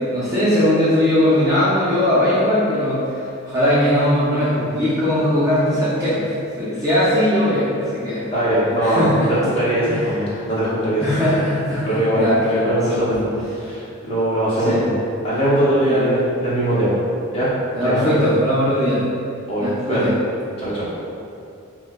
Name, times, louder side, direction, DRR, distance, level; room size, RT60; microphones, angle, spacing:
voice 1, 0.0-3.0 3.4-8.2 8.8-9.3 9.9-10.0 11.0-13.2 14.6-14.8 15.9-16.2 17.7-19.0 19.6-20.1, left 1 dB, 15° right, -11 dB, 0.5 m, -19 dB
voice 2, 8.3-11.2 11.8-14.9 15.2-17.0 17.3-17.5 17.8-18.2 19.5-20.1 20.6-20.9, right 1 dB, 25° left, -10 dB, 0.8 m, -21 dB
4.5 x 2.1 x 2.3 m, 2.5 s
head